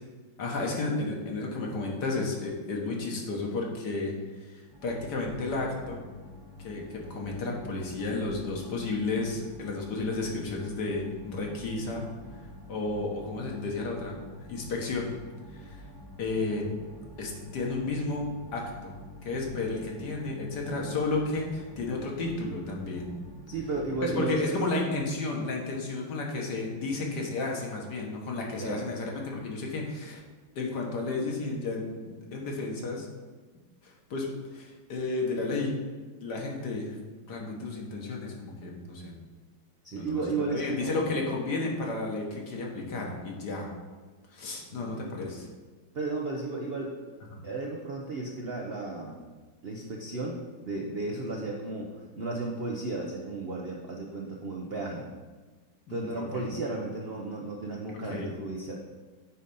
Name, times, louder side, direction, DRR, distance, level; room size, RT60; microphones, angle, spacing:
voice 1, 0.4-4.2 4.4-6.0 6.6-12.1 12.7-14.2 14.5-15.1 15.5-15.8 16.2-16.7 17.2-18.9 19.2-23.1 24.0-30.2 30.6-33.1 33.8-35.8 36.2-36.9 37.3-39.1 39.9-40.2 40.5-43.7 44.3-45.5 47.3-47.4 51.2-51.3 55.9-56.5 57.9-58.3, left 3 dB, 60° left, -1 dB, 1.8 m, -32 dB
sound 1, 4.7-24.2, left 2 dB, 15° right, 0.8 m, -47 dB
voice 2, 23.5-24.7 28.6-28.9 39.8-41.2 44.7-45.1 45.9-46.9 47.4-49.1 49.6-55.1 55.9-58.7, right 3 dB, 60° right, 0 dB, 0.6 m, -34 dB
9.0 x 3.9 x 5.5 m, 1.3 s
omnidirectional pair, 2.1 m